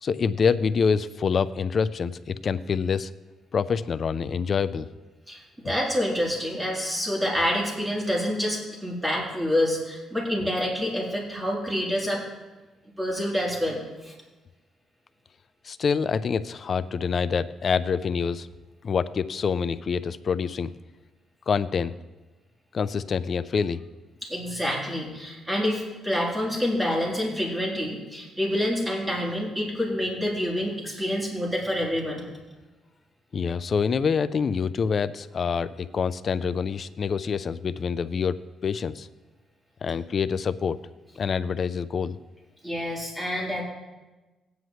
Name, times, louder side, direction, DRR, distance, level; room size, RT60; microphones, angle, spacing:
voice 1, 0.0-3.1 3.5-4.9 15.6-18.5 18.8-20.7 21.5-21.9 22.7-23.8 33.3-39.1 39.8-40.8 41.2-42.2, left 6 dB, 45° left, 14 dB, 0.5 m, -26 dB
voice 2, 5.3-12.2 13.0-14.1 24.2-32.2 42.6-43.6, equal, 10° right, -4 dB, 3.5 m, -27 dB
17.0 x 9.4 x 3.2 m, 1.2 s
cardioid pair, 90°, 0 cm